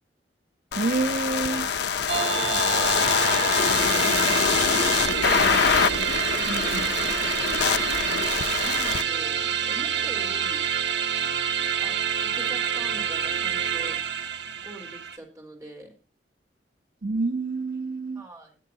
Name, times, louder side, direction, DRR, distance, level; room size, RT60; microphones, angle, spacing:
sound 1, 0.7-9.0, left 6 dB, 70° left, 0.8 m, -24 dB
voice 1, 0.8-1.7 6.5-6.6 17.0-18.2, right 3 dB, 60° right, 1.2 m, -27 dB
voice 2, 1.5-5.6 6.0-7.7 8.5-10.7 11.8-14.0 14.6-15.9 18.1-18.6, right 1 dB, 20° right, 4.2 m, -44 dB
sound 2, 2.1-15.2, right 8 dB, 80° right, 1.1 m, -27 dB
21.5 x 7.4 x 2.8 m
head